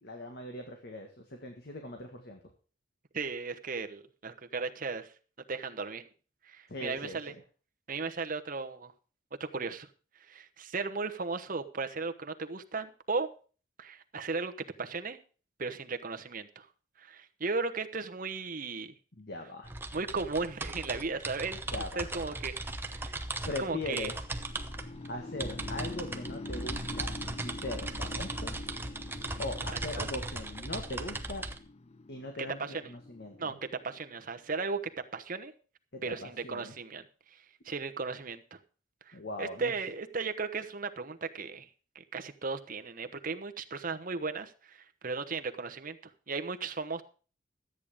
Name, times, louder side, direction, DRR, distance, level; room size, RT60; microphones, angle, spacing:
voice 1, 0.0-2.4 6.7-7.2 19.2-19.7 21.7-22.4 23.5-24.2 25.1-27.1 27.4-28.5 29.4-31.4 32.1-33.6 35.9-36.7 39.1-39.7, left 2 dB, 55° left, 4 dB, 1.7 m, -40 dB
voice 2, 3.1-5.1 5.5-6.0 6.4-7.3 7.9-8.9 9.4-9.9 10.3-13.3 13.8-14.5 14.8-15.2 15.6-16.7 17.0-18.9 19.9-21.6 21.9-22.6 22.9-24.1 29.7-30.1 32.6-32.9 33.4-33.6 33.8-34.8 35.1-35.5 36.0-37.0 37.3-38.6 39.1-41.7 41.9-47.0, right 4 dB, 45° right, 8 dB, 1.0 m, -36 dB
sound 1, 19.6-31.6, right 2 dB, 10° right, 0.9 m, -38 dB
sound 2, 24.3-34.3, left 2 dB, 30° left, 0.5 m, -45 dB
13.0 x 8.8 x 5.0 m, 0.39 s
head